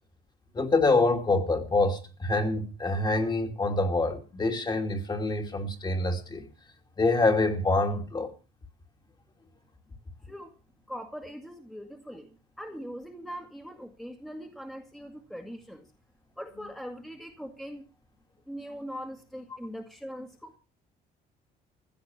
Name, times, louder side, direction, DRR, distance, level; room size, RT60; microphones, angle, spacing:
voice 1, 0.5-6.4 7.0-8.3, left 2 dB, 25° left, 2.8 m, -26 dB
voice 2, 10.9-15.8 16.4-17.8 18.5-20.6, equal, ahead, 2.0 m, -41 dB
15.5 x 8.6 x 7.2 m
cardioid pair, 110°, 17 cm